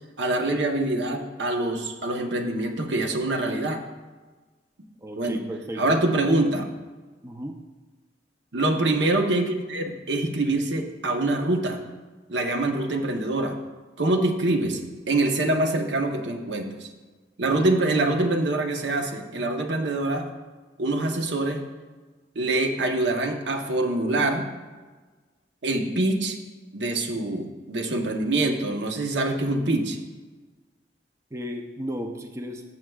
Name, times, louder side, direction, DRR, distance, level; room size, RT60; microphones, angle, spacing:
voice 1, 0.2-3.8 5.2-5.4 5.8-6.7 8.5-11.8 12.3-13.6 14.0-14.8 15.1-16.9 17.4-20.3 20.8-21.6 22.3-24.5 25.6-26.4 26.7-30.0, right 2 dB, 85° right, 4 dB, 0.9 m, -25 dB
voice 2, 5.0-6.0 7.2-7.6 31.3-32.6, equal, 15° right, 3 dB, 0.5 m, -34 dB
14.0 x 7.3 x 2.4 m, 1.3 s
head